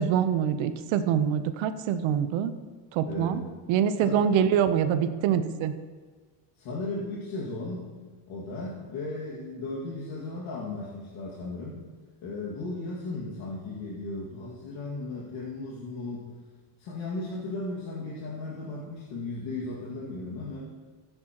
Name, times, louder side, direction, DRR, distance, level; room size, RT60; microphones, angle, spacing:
voice 1, 0.0-2.5 2.9-3.4 3.7-5.7, right 8 dB, 65° right, 10 dB, 0.9 m, -25 dB
voice 2, 3.0-3.4 4.0-4.3 6.6-7.9 8.3-11.8 12.2-16.3 16.8-20.6, left 2 dB, 65° left, -5 dB, 2.2 m, -36 dB
14.5 x 9.0 x 3.0 m, 1.4 s
cardioid pair, 105°, 49 cm